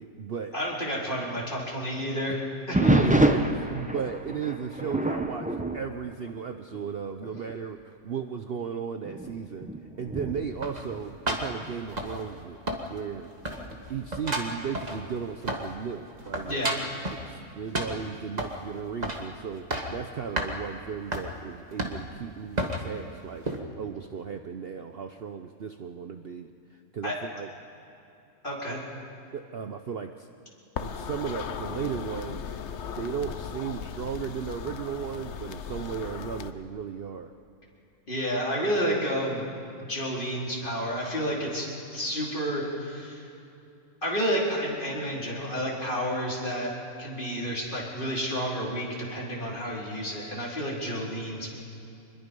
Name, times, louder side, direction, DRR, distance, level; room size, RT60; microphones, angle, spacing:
voice 1, 0.0-0.6 2.8-9.7 10.0-13.3 13.9-16.7 17.2-23.5 23.8-27.5 29.3-30.3 30.8-32.4 33.0-37.3, right 7 dB, 50° right, 7 dB, 0.8 m, -35 dB
voice 2, 0.5-2.4 2.7-2.8 16.4-16.8 27.0-27.2 28.4-28.8 38.1-39.5 39.8-43.3 44.0-46.7 47.0-51.5, equal, 35° left, -4 dB, 4.3 m, -30 dB
sound 1, 2.7-6.9 7.2-7.6 8.2-8.3 9.0-11.7 13.6-14.1, right 1 dB, 5° right, 0.7 m, -27 dB
sound 2, 10.6-12.4 12.7-13.2 13.4-15.8 16.1-17.2 17.7-18.6 19.0-19.3 19.5-20.0 20.4-20.5 21.1-21.3 21.8-22.2 22.6-22.9 23.4-23.6, right 1 dB, 30° right, 1.8 m, -32 dB
sound 3, 30.8-36.5, left 7 dB, 55° left, 1.0 m, -37 dB
25.5 x 21.5 x 5.4 m, 2.8 s
omnidirectional pair, 1.6 m